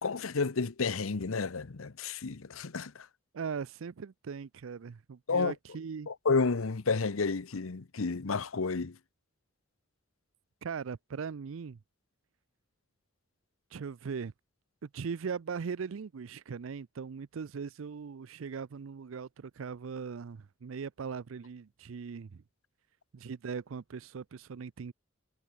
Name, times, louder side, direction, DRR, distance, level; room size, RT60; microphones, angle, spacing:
voice 1, 0.0-3.1 5.3-5.5 6.1-9.0, left 4 dB, 85° left, 0.8 m, -31 dB
voice 2, 3.3-6.1 10.6-11.8 13.7-14.3 14.8-22.4 23.1-24.9, right 6 dB, 70° right, 0.5 m, -39 dB
head